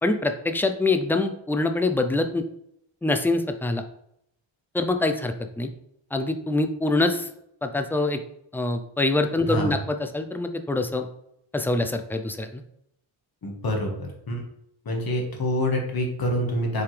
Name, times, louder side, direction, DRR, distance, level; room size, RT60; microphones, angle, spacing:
voice 1, 0.0-2.4 3.0-3.8 4.7-5.7 6.1-7.3 7.6-8.2 8.5-11.1 11.5-12.6, left 2 dB, 5° left, 7 dB, 0.3 m, -25 dB
voice 2, 13.4-14.4 14.8-16.8, left 1 dB, 50° left, 1 dB, 1.6 m, -26 dB
6.9 x 4.8 x 3.2 m, 0.74 s
wide cardioid pair, 180°, 48 cm